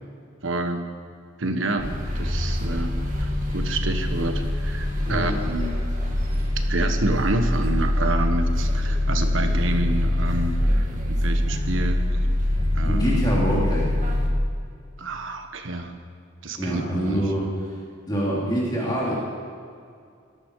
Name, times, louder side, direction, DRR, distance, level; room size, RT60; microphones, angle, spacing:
voice 1, 0.4-0.9 1.4-5.7 6.7-12.0 12.7-13.2 15.0-15.9 16.4-17.2, right 2 dB, 70° right, 6 dB, 1.4 m, -28 dB
sound 1, 1.8-14.3, left 1 dB, 40° right, 2.2 m, -24 dB
voice 2, 12.8-13.9 16.6-17.7 18.1-19.2, equal, 20° left, -6 dB, 3.1 m, -25 dB
18.5 x 13.5 x 4.8 m, 2.3 s
head